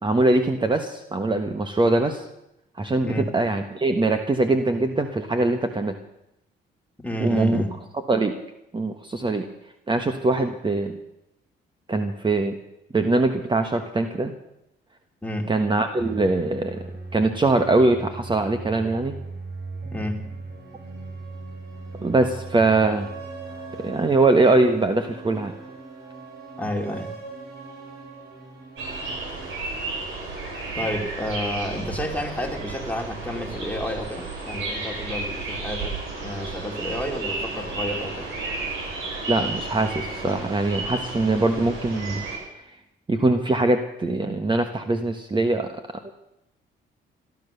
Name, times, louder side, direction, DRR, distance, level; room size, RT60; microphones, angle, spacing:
voice 1, 0.0-2.2 2.8-6.0 7.2-7.6 8.1-8.3 8.7-9.5 9.9-11.0 11.9-12.5 12.9-14.3 15.5-16.8 17.1-19.1 22.0-23.1 23.8-25.5 39.3-42.3 43.1-45.8, right 2 dB, 25° right, 7 dB, 1.3 m, -22 dB
voice 2, 7.0-7.7 15.2-15.5 19.9-20.3 26.6-27.1 30.7-38.3, left 1 dB, 5° left, 2 dB, 2.8 m, -30 dB
sound 1, 16.0-29.4, right 3 dB, 50° right, 7.5 m, -39 dB
sound 2, 28.8-42.4, right 3 dB, 80° right, 6.5 m, -32 dB
17.0 x 12.0 x 6.8 m, 0.85 s
cardioid pair, 90°, 20 cm